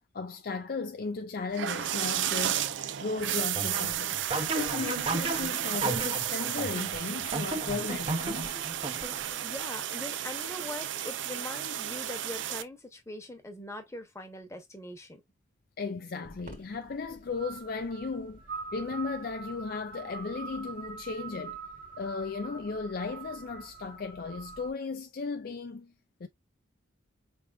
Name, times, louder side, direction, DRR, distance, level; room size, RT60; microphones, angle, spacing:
voice 1, 0.1-2.7 3.0-4.2 4.5-8.6 15.8-18.4 18.7-21.6 22.0-25.9 26.2-26.3, left 4 dB, 50° left, 0.4 m, -36 dB
sound 1, 1.5-12.6, right 11 dB, 70° right, 0.4 m, -33 dB
sound 2, 3.6-9.5, right 2 dB, 30° right, 0.6 m, -35 dB
voice 2, 9.4-15.2, left 1 dB, 15° left, 1.0 m, -42 dB
sound 3, 16.2-24.7, right 4 dB, 45° right, 1.2 m, -44 dB
4.8 x 3.5 x 2.4 m
head